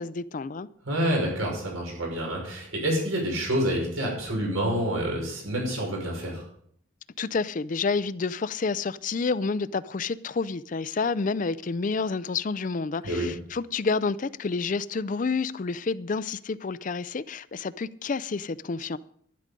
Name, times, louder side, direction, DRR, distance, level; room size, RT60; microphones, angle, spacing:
voice 1, 0.0-0.7 7.2-19.0, left 4 dB, 40° left, 0.4 m, -29 dB
voice 2, 0.8-6.4 13.0-13.3, equal, 90° right, 6.0 m, -28 dB
11.5 x 11.5 x 5.3 m
head